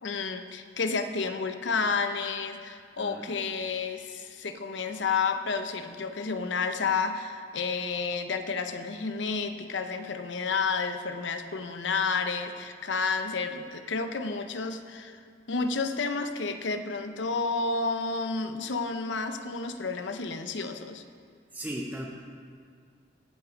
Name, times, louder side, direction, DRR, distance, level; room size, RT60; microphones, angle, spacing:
voice 1, 0.0-21.0, left 4 dB, 70° left, 8 dB, 0.7 m, -31 dB
voice 2, 3.0-3.3 21.5-22.1, right 1 dB, 10° right, -1 dB, 0.6 m, -36 dB
17.0 x 5.8 x 5.2 m, 2.2 s
head